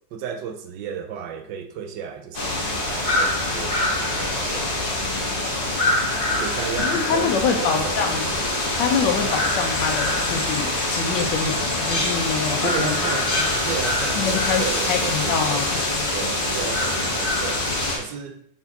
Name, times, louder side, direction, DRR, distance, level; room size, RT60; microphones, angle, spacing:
voice 1, 0.1-4.8 6.4-8.0 12.6-15.7 16.1-18.4, right 7 dB, 70° right, 7 dB, 1.3 m, -34 dB
sound 1, 2.3-18.0, left 1 dB, 30° left, 1.5 m, -24 dB
voice 2, 6.8-8.3 8.7-13.0 14.2-16.1, left 6 dB, 70° left, 3 dB, 1.5 m, -25 dB
5.7 x 4.7 x 4.1 m, 0.65 s
omnidirectional pair, 2.1 m